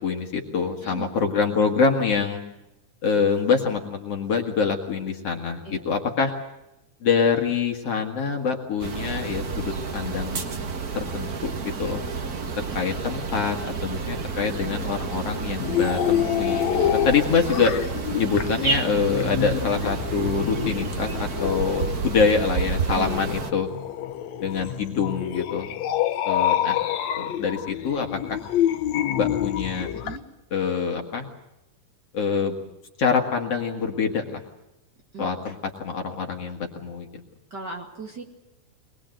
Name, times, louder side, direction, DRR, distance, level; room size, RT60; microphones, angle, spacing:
voice 1, 0.0-2.4 3.0-6.3 7.0-10.7 10.9-12.0 12.6-16.7 16.9-17.7 18.1-23.7 24.4-25.7 26.2-26.8 27.1-28.4 29.1-29.9 30.5-31.3 32.1-32.6 33.0-34.4 35.2-35.6 35.8-37.1, left 5 dB, 50° left, 3 dB, 2.6 m, -25 dB
sound 1, 8.8-23.5, right 5 dB, 50° right, 1.0 m, -30 dB
sound 2, 15.6-30.2, left 11 dB, 70° left, 2.0 m, -27 dB
voice 2, 22.9-23.2 30.0-30.2 35.1-35.3 37.5-38.2, right 4 dB, 35° right, 1 dB, 2.7 m, -37 dB
23.5 x 20.5 x 7.7 m, 0.93 s
omnidirectional pair, 3.7 m